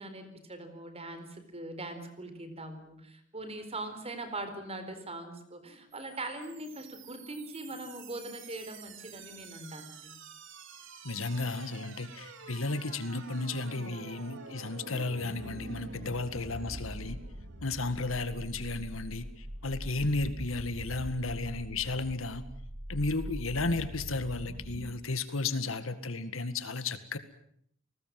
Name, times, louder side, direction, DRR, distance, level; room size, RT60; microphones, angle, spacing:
voice 1, 0.0-10.2, right 2 dB, 30° right, 9 dB, 4.3 m, -41 dB
sound 1, 5.9-24.9, right 1 dB, 65° right, 3.4 m, -44 dB
voice 2, 11.0-17.2 17.6-22.4 22.9-27.2, left 3 dB, 75° left, 11 dB, 2.0 m, -33 dB
30.0 x 19.5 x 7.7 m, 0.70 s
head